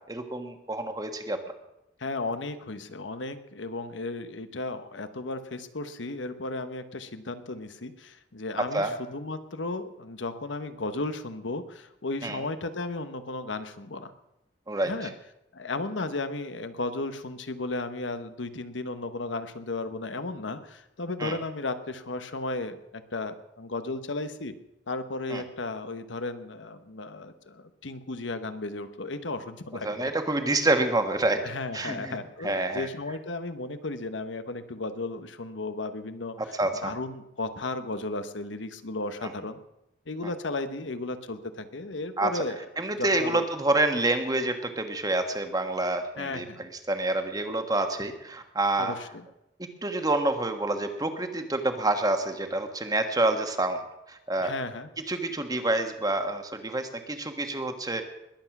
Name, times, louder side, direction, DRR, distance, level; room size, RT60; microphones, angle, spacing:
voice 1, 0.1-1.4 8.7-8.9 12.2-12.4 14.7-14.9 21.2-21.4 25.3-25.4 29.8-31.4 31.7-32.2 32.4-32.9 36.4-36.9 42.2-42.3 42.8-48.9 49.8-53.8 54.1-54.5 55.1-58.1, right 2 dB, 20° right, 7 dB, 1.4 m, -27 dB
voice 2, 2.0-14.1 14.8-15.1 15.5-24.5 24.9-30.0 31.4-36.5 36.8-39.6 40.1-42.7 42.9-43.5 46.2-46.7 48.8-49.3 54.4-54.9, left 2 dB, 90° left, 10 dB, 1.1 m, -34 dB
21.0 x 8.2 x 6.0 m, 0.87 s
head